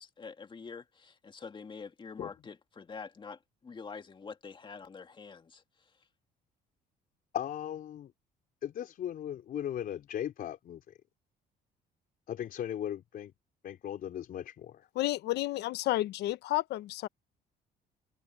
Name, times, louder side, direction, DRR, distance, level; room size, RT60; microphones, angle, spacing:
voice 1, 0.0-5.6, left 5 dB, 30° left, 2.2 m, -46 dB
voice 2, 7.3-8.1 8.6-11.0 12.3-13.3 13.6-14.9, left 10 dB, 60° left, 4.5 m, -37 dB
voice 3, 15.0-17.1, left 16 dB, 80° left, 1.2 m, -31 dB
open air
cardioid pair, 110°, 17 cm